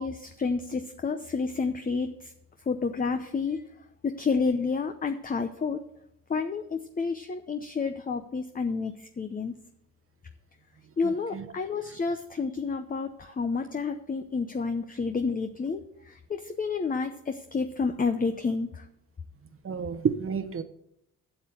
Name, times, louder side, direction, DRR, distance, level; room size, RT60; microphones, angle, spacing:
voice 1, 0.0-2.3 2.7-3.6 4.0-5.8 6.3-9.5 11.0-18.8, left 4 dB, 25° left, 0.7 m, -30 dB
voice 2, 11.0-11.5 16.5-16.6 19.6-20.6, right 6 dB, 40° right, 1.0 m, -31 dB
8.0 x 6.9 x 7.6 m
supercardioid pair, 70°, 34 cm